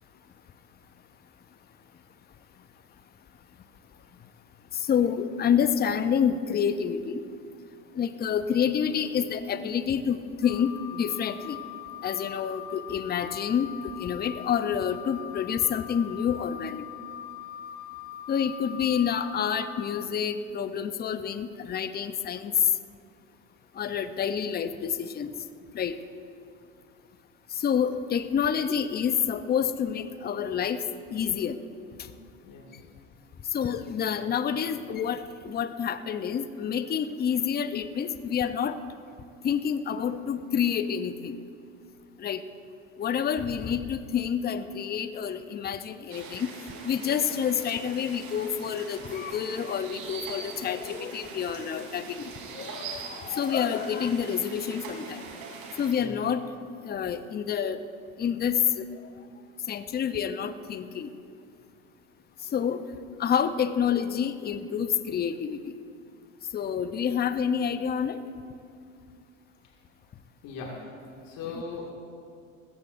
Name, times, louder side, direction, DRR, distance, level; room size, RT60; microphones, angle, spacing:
voice 1, 4.7-7.2 7.9-11.6 12.0-16.8 18.3-22.7 23.8-25.3 25.7-26.0 27.5-31.6 33.5-38.8 39.4-41.4 42.2-42.4 43.0-46.5 46.8-55.2 55.8-56.5 56.8-57.8 58.2-58.9 59.7-61.1 62.5-62.8 63.2-65.7 66.5-68.2, left 8 dB, 25° left, 12 dB, 0.7 m, -28 dB
Wind instrument woodwind instrument, 10.4-20.1, left 11 dB, 65° left, 0.7 m, -41 dB
voice 2, 32.4-32.8 56.0-56.2 70.4-70.9 71.2-71.9, left 4 dB, 50° left, -1 dB, 2.2 m, -39 dB
sound 1, 46.1-55.9, right 4 dB, 60° right, 3.5 m, -42 dB
20.0 x 16.0 x 2.6 m, 2.4 s
hypercardioid pair, 85°, 41 cm